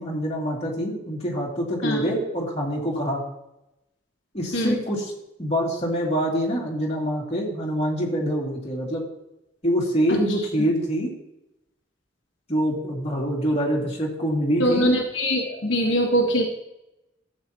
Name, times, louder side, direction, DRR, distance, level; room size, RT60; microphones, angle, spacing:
voice 1, 0.0-3.2 4.3-5.1 5.4-9.0 9.6-11.1 12.5-14.9, equal, 35° left, -3 dB, 2.5 m, -25 dB
voice 2, 14.6-16.4, equal, 75° left, 0 dB, 1.3 m, -22 dB
13.5 x 7.9 x 2.9 m, 0.88 s
head